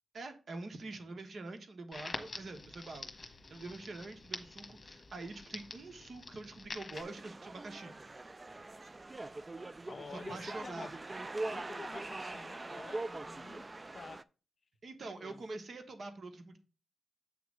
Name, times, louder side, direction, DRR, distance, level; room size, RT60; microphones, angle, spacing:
voice 1, 0.1-7.9 10.1-11.0 14.8-16.6, right 2 dB, 55° right, 1.4 m, -45 dB
Crackle, 1.9-7.0, left 3 dB, 35° left, 1.3 m, -46 dB
sound 1, 6.9-14.2, right 2 dB, 30° right, 0.4 m, -43 dB
voice 2, 9.9-11.0 11.3-14.3 15.1-15.4, left 5 dB, 50° left, 0.4 m, -50 dB
7.9 x 3.2 x 6.2 m
cardioid pair, 70°, 0 cm